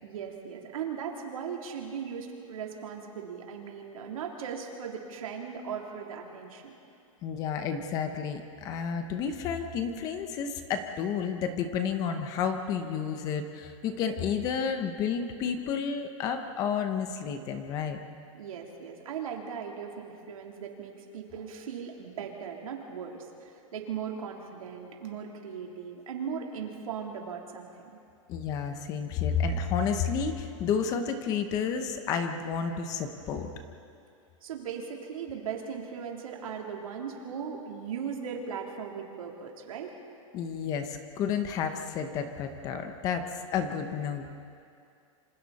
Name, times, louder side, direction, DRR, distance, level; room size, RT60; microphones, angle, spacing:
voice 1, 0.0-6.7 18.3-27.9 34.4-40.0, right 7 dB, 85° right, 0 dB, 3.6 m, -38 dB
voice 2, 7.2-18.0 28.3-33.5 40.3-43.2 43.5-44.3, left 6 dB, 20° left, 7 dB, 1.0 m, -31 dB
27.5 x 26.0 x 4.2 m, 2.4 s
supercardioid pair, 175°, 17 cm